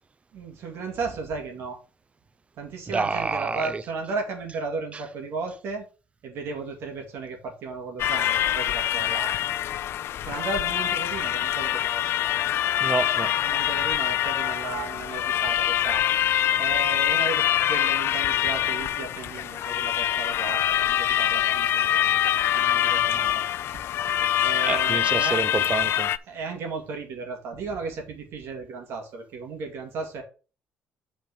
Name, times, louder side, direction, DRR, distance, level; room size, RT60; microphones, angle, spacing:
voice 1, 0.3-1.8 2.6-5.8 6.2-9.4 10.2-12.2 13.4-16.1 16.6-22.1 22.5-23.4 24.4-25.4 26.3-30.2, right 4 dB, 65° right, 2.3 m, -35 dB
voice 2, 2.9-3.8 12.8-13.4 24.7-26.1, right 4 dB, 25° right, 0.7 m, -28 dB
sound 1, 8.0-26.2, left 12 dB, 65° left, 0.4 m, -24 dB
5.8 x 4.5 x 6.4 m
cardioid pair, 85°, 5 cm